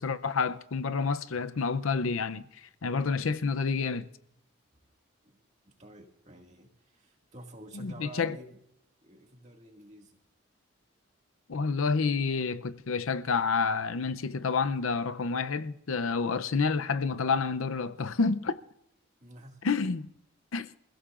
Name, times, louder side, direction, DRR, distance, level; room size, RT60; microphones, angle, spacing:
voice 1, 0.0-2.5 2.8-4.1 7.7-8.4 11.5-18.6 19.6-20.1 20.5-20.7, left 4 dB, 75° left, 0.6 m, -29 dB
voice 2, 5.2-8.6 9.0-10.2 19.2-19.6, right 1 dB, 35° right, 2.1 m, -49 dB
28.5 x 15.5 x 2.5 m
head